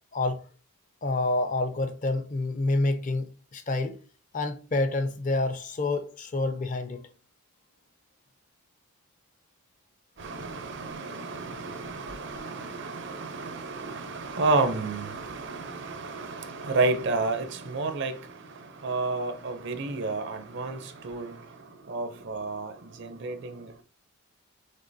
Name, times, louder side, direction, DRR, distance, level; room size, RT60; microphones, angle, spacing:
voice 1, 0.1-0.4 1.0-4.0 4.3-7.0, left 2 dB, 35° left, 0.5 m, -28 dB
voice 2, 10.2-18.3 18.8-21.4 21.9-23.8, right 3 dB, 50° right, 0.6 m, -31 dB
5.3 x 3.7 x 2.6 m
head